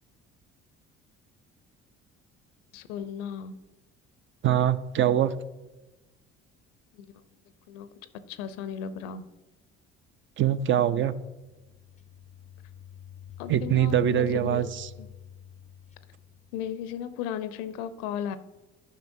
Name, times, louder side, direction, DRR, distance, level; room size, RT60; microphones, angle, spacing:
voice 1, 2.7-3.7 6.9-7.1 7.7-7.9 8.3-9.2 13.4-14.7 15.0-15.1 16.5-18.4, left 8 dB, 75° left, 13 dB, 0.6 m, -35 dB
voice 2, 4.4-5.3 10.4-11.1 13.5-14.9, right 10 dB, 40° right, 13 dB, 0.5 m, -23 dB
sound 1, 11.3-16.9, left 9 dB, 25° left, 0.4 m, -47 dB
10.5 x 5.7 x 2.6 m, 1.1 s
hypercardioid pair, 60°, 31 cm